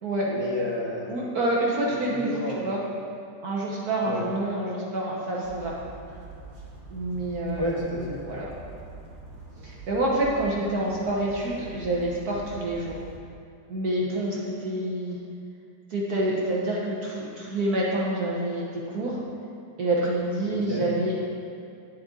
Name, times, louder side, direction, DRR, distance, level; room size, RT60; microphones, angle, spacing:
voice 1, 0.3-1.1 2.1-2.7 4.0-4.3 7.5-8.2 20.7-20.8, left 1 dB, 15° right, -6 dB, 1.4 m, -30 dB
voice 2, 1.1-2.8 3.4-5.8 6.9-7.8 8.2-8.5 9.6-13.0 13.7-15.2 15.9-19.2 19.8-21.2, right 1 dB, 60° right, -4 dB, 1.5 m, -27 dB
sound 1, 5.4-13.2, right 2 dB, 35° right, 1.0 m, -44 dB
9.5 x 8.1 x 3.8 m, 2.4 s
omnidirectional pair, 2.0 m